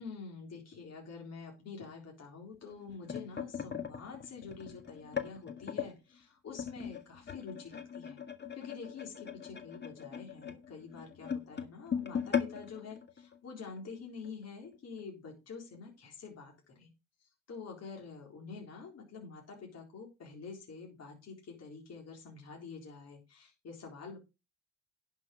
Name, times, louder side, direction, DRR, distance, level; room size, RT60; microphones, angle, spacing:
voice 1, 0.0-8.2 8.5-16.9 17.2-24.2, left 5 dB, 55° left, 0 dB, 3.9 m, -47 dB
sound 1, 2.6-5.9 6.6-13.9 14.2-14.4 14.7-15.0 15.7-15.8, left 7 dB, 35° left, 1.8 m, -39 dB
11.0 x 6.4 x 5.1 m, 0.27 s
cardioid pair, 90°, 31 cm